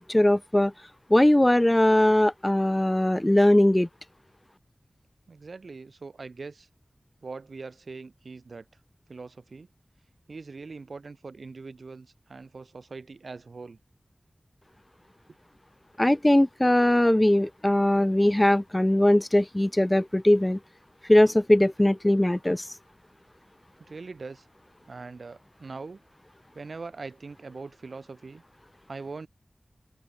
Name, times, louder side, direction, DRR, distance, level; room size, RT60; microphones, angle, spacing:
voice 1, 0.1-0.7 1.1-3.9 16.0-20.6 21.1-22.6, left 1 dB, 20° left, 0.7 m, -20 dB
voice 2, 5.3-6.7 7.2-8.7 9.1-9.7 10.3-13.8 23.9-24.5 24.8-26.0 26.5-28.4 28.9-29.3, right 4 dB, 80° right, 5.8 m, -41 dB
open air
cardioid pair, 40°, 0 cm